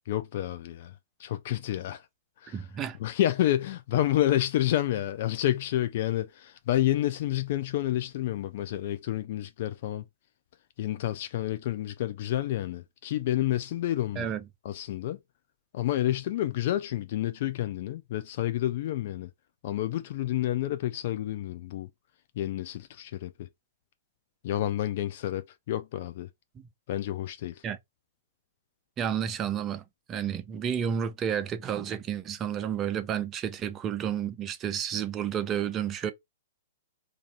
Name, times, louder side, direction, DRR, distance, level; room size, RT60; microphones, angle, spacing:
voice 1, 0.1-0.9 1.2-2.0 2.4-2.6 3.0-10.0 10.8-14.3 14.6-15.2 15.7-19.3 19.6-21.9 22.4-23.3 24.4-26.3 26.9-27.5, left 13 dB, 45° left, 0.3 m, -29 dB
voice 2, 2.5-3.0 14.2-14.4 26.6-26.7 27.6-27.8 29.0-36.1, right 8 dB, 20° right, 0.5 m, -31 dB
2.6 x 2.5 x 4.0 m
figure-of-eight pair, 115°, 0 cm